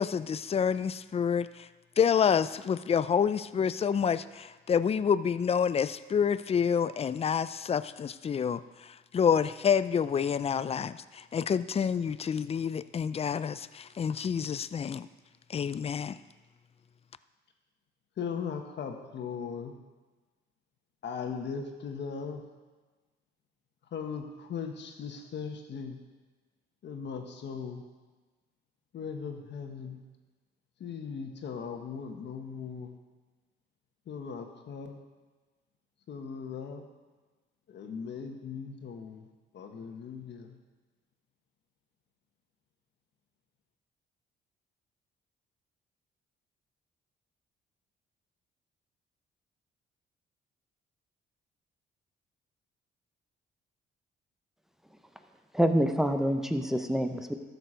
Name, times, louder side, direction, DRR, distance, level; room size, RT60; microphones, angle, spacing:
voice 1, 0.0-1.7 2.0-8.6 9.1-15.1 15.5-16.2, left 7 dB, 30° left, 15 dB, 0.4 m, -28 dB
voice 2, 18.2-19.8 21.0-22.5 23.9-26.0 26.8-27.9 28.9-30.0 30.8-33.0 34.0-35.0 36.1-36.8 37.7-39.3 39.5-40.6, left 6 dB, 60° left, 4 dB, 1.4 m, -38 dB
voice 3, 55.5-57.3, equal, ahead, 6 dB, 0.9 m, -26 dB
12.5 x 6.9 x 5.1 m, 1.3 s
cardioid pair, 90°, 20 cm